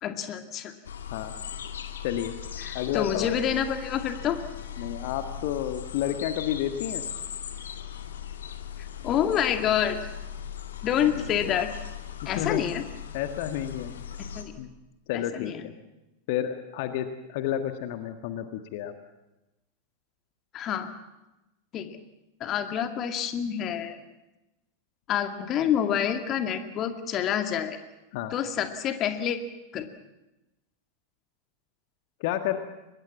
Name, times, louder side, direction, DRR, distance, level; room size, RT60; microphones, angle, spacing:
voice 1, 0.0-0.7 2.6-4.4 9.0-10.0 10.8-11.7 12.3-12.8 14.2-14.5 15.1-15.7 20.5-20.9 21.7-22.0 22.4-24.0 25.1-27.8 28.3-29.4 29.7-29.8, left 9 dB, 30° left, 7 dB, 2.2 m, -27 dB
sound 1, 0.8-14.4, left 9 dB, 65° left, 2.1 m, -38 dB
voice 2, 2.7-3.4 4.8-7.0 11.2-11.3 12.2-12.7 13.1-14.0 14.6-14.7 15.1-15.7 16.3-18.9 28.1-28.3 32.2-32.6, left 11 dB, 50° left, 8 dB, 1.6 m, -30 dB
24.5 x 21.0 x 7.3 m, 0.97 s
figure-of-eight pair, 90°, 0 cm